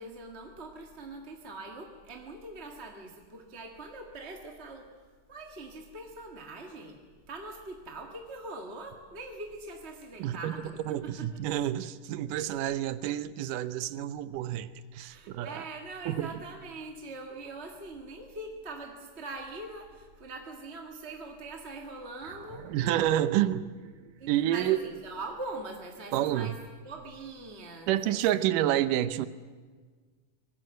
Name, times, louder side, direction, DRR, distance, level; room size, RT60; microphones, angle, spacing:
voice 1, 0.0-4.9 5.3-11.3 15.1-22.7 24.2-26.6 26.8-28.5, right 2 dB, 25° right, 2 dB, 1.5 m, -42 dB
voice 2, 10.2-10.5 10.9-15.6 16.1-16.3 22.7-23.7 24.3-24.8 26.1-26.5 27.9-29.3, right 12 dB, 90° right, 14 dB, 2.4 m, -29 dB
sound 1, 22.2-26.8, right 8 dB, 65° right, 2.1 m, -52 dB
25.0 x 20.0 x 7.7 m, 1.5 s
omnidirectional pair, 3.6 m